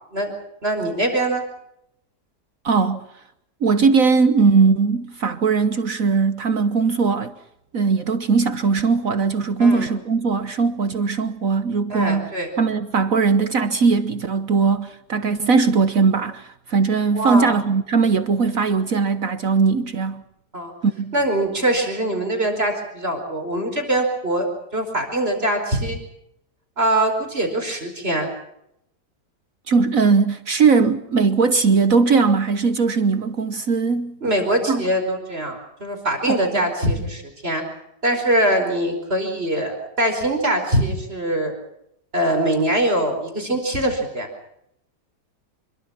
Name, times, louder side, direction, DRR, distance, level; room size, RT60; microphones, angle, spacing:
voice 1, 0.6-1.4 9.6-9.9 11.9-12.5 17.1-17.5 20.5-20.7 21.1-24.5 24.7-26.0 26.8-28.3 34.2-37.6 38.0-41.5 42.1-44.3, right 1 dB, 35° right, 5.1 m, -22 dB
voice 2, 2.6-3.0 3.6-7.3 7.7-12.3 12.6-20.2 20.8-21.1 29.7-34.2 34.7-34.8 36.3-36.5, right 4 dB, 55° right, 1.4 m, -19 dB
26.0 x 23.5 x 5.9 m
omnidirectional pair, 1.8 m